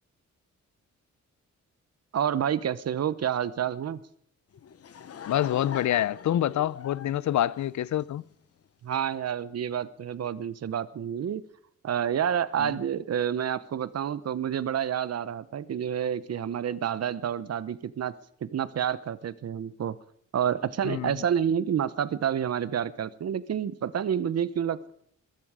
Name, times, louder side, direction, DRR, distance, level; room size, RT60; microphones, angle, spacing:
voice 1, 2.1-4.0 8.8-11.4 11.8-18.1 18.4-20.0 20.3-24.9, right 9 dB, 55° right, 0.8 m, -29 dB
Laughter / Crowd, 4.5-8.3, left 8 dB, 55° left, 1.0 m, -42 dB
voice 2, 5.3-8.2 12.6-12.7 20.8-21.2, left 12 dB, 70° left, 0.6 m, -27 dB
21.0 x 12.0 x 4.9 m
wide cardioid pair, 135°, 30 cm